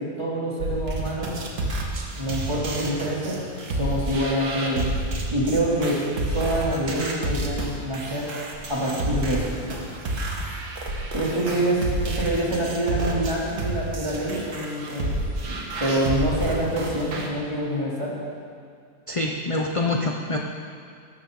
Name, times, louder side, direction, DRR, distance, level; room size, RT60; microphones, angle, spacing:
voice 1, 0.0-1.4 2.1-3.4 3.7-4.9 5.3-8.4 8.7-9.6 11.1-18.2, right 1 dB, 20° right, -6 dB, 3.2 m, -26 dB
sound 1, 0.6-17.3, right 1 dB, 75° right, 2.1 m, -30 dB
voice 2, 19.1-20.4, left 2 dB, 35° left, 1 dB, 0.5 m, -25 dB
17.5 x 13.5 x 3.9 m, 2.2 s
omnidirectional pair, 1.6 m